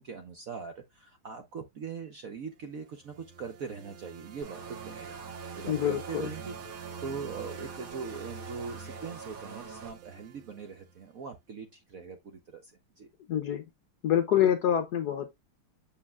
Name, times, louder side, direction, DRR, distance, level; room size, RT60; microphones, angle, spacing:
voice 1, 0.0-5.1 5.5-12.7 13.0-13.1, right 5 dB, 60° right, 0.9 m, -41 dB
sound 1, 2.8-11.0, right 6 dB, 80° right, 1.7 m, -46 dB
sound 2, 4.4-9.9, right 4 dB, 45° right, 1.7 m, -45 dB
voice 2, 5.7-6.3 13.3-13.6 14.0-15.3, left 10 dB, 70° left, 1.0 m, -26 dB
7.4 x 7.1 x 2.3 m
omnidirectional pair, 2.3 m